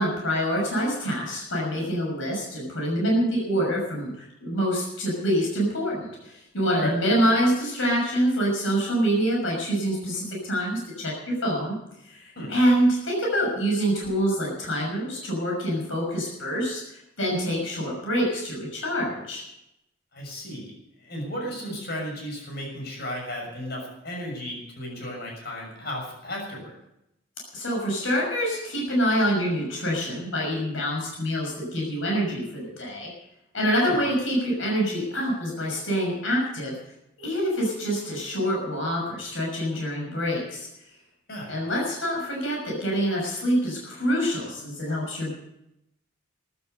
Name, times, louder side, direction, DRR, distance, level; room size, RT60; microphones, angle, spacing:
voice 1, 0.0-11.7 12.0-19.4 27.5-33.1 33.5-36.7 37.2-40.7 41.5-45.3, equal, 75° left, -1 dB, 6.2 m, -26 dB
voice 2, 20.1-26.7 33.9-34.0 41.3-41.5, equal, 55° left, 0 dB, 6.5 m, -34 dB
15.0 x 12.5 x 6.7 m, 0.83 s
head